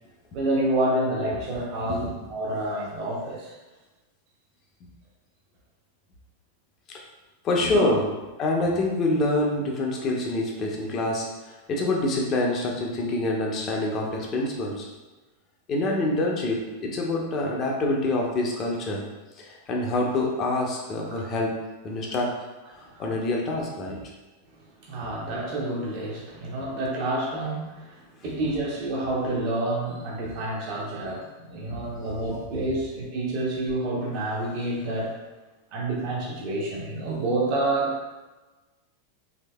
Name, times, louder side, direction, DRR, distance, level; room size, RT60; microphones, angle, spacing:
voice 1, 0.3-3.5 7.7-7.9 20.0-20.1 21.1-21.2 22.9-23.0 24.8-35.2 35.7-38.0, right 1 dB, 40° right, -3 dB, 0.8 m, -28 dB
voice 2, 7.4-8.1 8.4-14.9 15.7-19.0 19.4-21.5 21.8-22.3 22.8-24.0 31.7-32.1, left 2 dB, 30° left, -1 dB, 0.6 m, -26 dB
3.1 x 2.7 x 2.2 m, 1.2 s
figure-of-eight pair, 90°, 0 cm